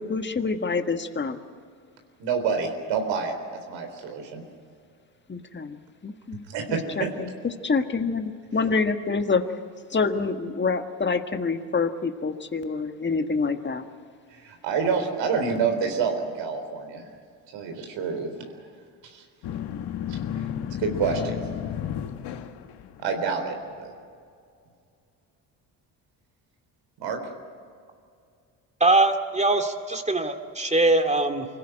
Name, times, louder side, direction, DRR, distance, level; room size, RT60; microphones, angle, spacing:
voice 1, 0.0-1.4 5.3-5.8 6.0-7.3 7.6-9.4 9.9-13.9, left 4 dB, 25° left, 7 dB, 1.6 m, -27 dB
voice 2, 2.2-3.4 3.7-4.4 6.5-7.1 14.4-17.0 17.5-18.5 19.0-19.2 20.1-20.2 20.8-21.4 23.0-23.9 27.0-27.2, right 5 dB, 75° right, 5 dB, 3.9 m, -28 dB
sound 1, 19.4-23.3, left 9 dB, 65° left, 1.4 m, -33 dB
voice 3, 28.8-31.5, right 2 dB, 15° right, 6 dB, 2.3 m, -22 dB
25.0 x 16.5 x 9.0 m, 2.3 s
supercardioid pair, 60°, 44 cm